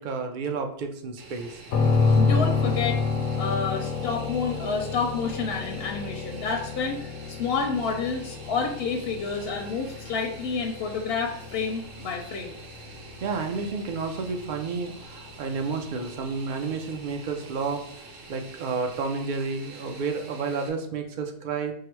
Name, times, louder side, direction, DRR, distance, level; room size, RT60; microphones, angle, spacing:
voice 1, 0.0-1.6 13.2-17.8 18.3-21.7, right 4 dB, 55° right, 4 dB, 0.5 m, -31 dB
Fixed-wing aircraft airplane, 1.2-20.7, right 3 dB, 75° right, 1.1 m, -46 dB
sound 1, 1.7-15.5, left 4 dB, 85° left, 1.0 m, -29 dB
voice 2, 2.1-3.0 3.4-12.6, left 5 dB, 60° left, 2 dB, 0.7 m, -29 dB
4.7 x 2.0 x 4.5 m, 0.64 s
omnidirectional pair, 1.4 m